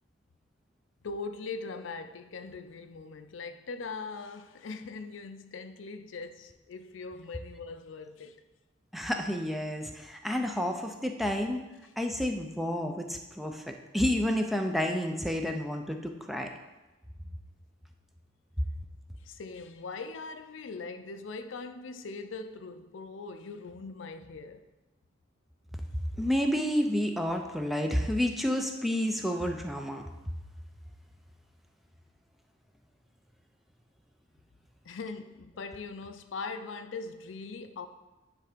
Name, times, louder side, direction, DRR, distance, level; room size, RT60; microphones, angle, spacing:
voice 1, 1.0-8.4 19.2-24.7 34.8-37.9, left 4 dB, 90° left, 0.5 m, -41 dB
voice 2, 8.9-16.5 26.2-30.0, equal, ahead, 0.5 m, -30 dB
9.6 x 3.4 x 5.0 m
head